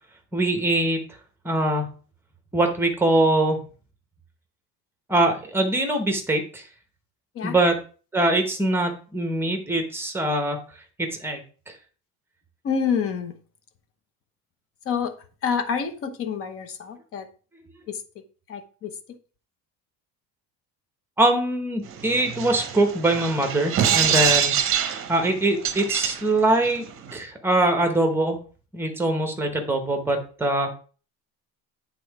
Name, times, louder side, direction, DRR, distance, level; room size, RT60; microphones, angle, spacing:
voice 1, 0.3-1.0 1.4-1.9 2.5-3.6 5.1-6.6 7.4-7.8 8.1-10.6 11.0-11.7 21.2-24.5 25.1-26.8 27.1-28.4 28.7-30.8, right 1 dB, 5° right, 5 dB, 0.9 m, -23 dB
voice 2, 12.6-13.3 14.9-15.1 15.4-17.3 18.5-18.9, left 6 dB, 35° left, 8 dB, 0.8 m, -27 dB
sound 1, 21.9-27.2, right 9 dB, 35° right, 0.8 m, -25 dB
8.4 x 3.8 x 4.7 m, 0.39 s
cardioid pair, 175°, 38 cm